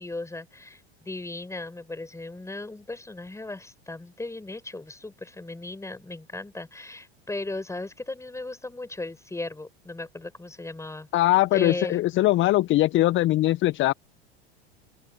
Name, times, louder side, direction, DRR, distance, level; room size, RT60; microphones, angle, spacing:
voice 1, 0.0-11.1 11.5-12.0, left 2 dB, 10° left, 6.2 m, -36 dB
voice 2, 11.1-13.9, left 16 dB, 35° left, 0.8 m, -21 dB
open air
hypercardioid pair, 85°, 32 cm